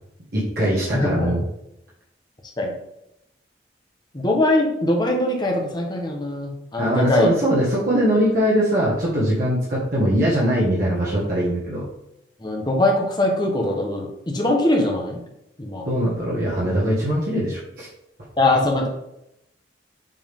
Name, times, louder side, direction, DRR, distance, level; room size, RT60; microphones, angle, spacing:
voice 1, 0.3-1.4 6.8-11.8 15.8-17.9, equal, 55° right, -7 dB, 1.6 m, -21 dB
voice 2, 0.9-1.3 2.6-2.7 4.1-7.3 12.4-15.2 15.6-15.9 18.4-18.9, left 1 dB, 25° left, 1 dB, 1.0 m, -21 dB
7.5 x 3.6 x 3.6 m, 0.82 s
head